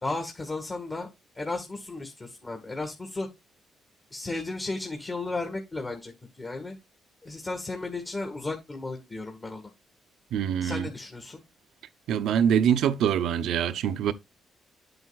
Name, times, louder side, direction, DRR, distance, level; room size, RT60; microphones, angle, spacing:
voice 1, 0.0-1.1 1.4-3.3 4.1-6.1 6.4-6.8 7.2-9.7 10.6-11.4, left 3 dB, 25° left, 2.0 m, -34 dB
voice 2, 10.3-10.9 12.1-14.1, right 8 dB, 80° right, 0.8 m, -24 dB
8.8 x 8.0 x 2.3 m
cardioid pair, 90°, 0 cm